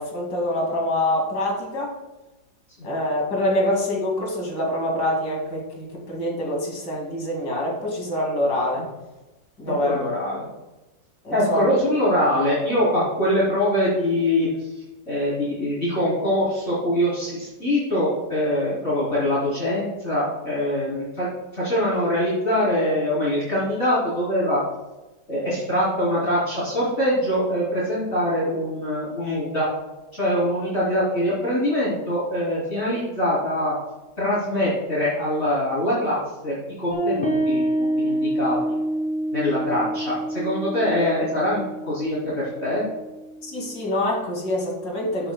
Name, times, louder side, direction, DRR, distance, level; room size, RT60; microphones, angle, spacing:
voice 1, 0.0-1.9 2.8-8.9 9.6-10.1 11.2-11.7 43.4-45.3, left 1 dB, 75° left, -2 dB, 2.8 m, -25 dB
voice 2, 9.6-10.5 11.3-14.7 15.1-21.3 21.5-24.6 25.3-29.7 30.2-33.7 34.2-38.8 39.3-42.8, left 1 dB, 45° left, -10 dB, 3.5 m, -23 dB
sound 1, 36.9-43.8, right 1 dB, 20° left, 2.1 m, -27 dB
13.5 x 7.5 x 2.2 m, 1.1 s
omnidirectional pair, 1.8 m